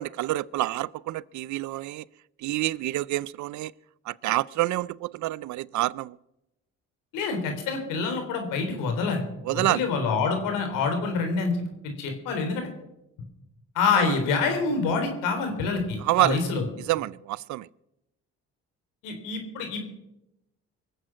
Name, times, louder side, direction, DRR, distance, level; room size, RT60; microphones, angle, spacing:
voice 1, 0.0-2.0 2.4-3.7 4.1-6.2 9.5-9.8 14.0-14.1 16.0-16.4 16.9-17.7, right 16 dB, 65° right, 0.5 m, -27 dB
voice 2, 7.1-9.2 9.5-12.7 13.8-16.7 19.0-19.9, left 4 dB, 85° left, 3.7 m, -27 dB
23.5 x 7.9 x 6.2 m
supercardioid pair, 80°, 32 cm